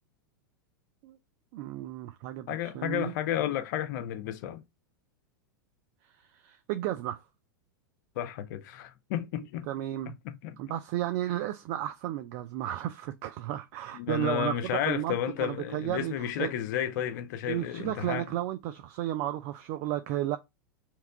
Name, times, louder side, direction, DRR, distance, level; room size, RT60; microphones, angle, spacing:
voice 1, 1.5-3.1 6.3-7.2 9.4-10.1 10.6-14.5 14.9-16.5 17.5-20.4, right 13 dB, 50° right, 0.4 m, -33 dB
voice 2, 2.5-4.6 8.2-9.7 10.2-10.6 13.9-18.3, left 10 dB, 60° left, 0.4 m, -32 dB
2.8 x 2.2 x 3.6 m
hypercardioid pair, 100°, 11 cm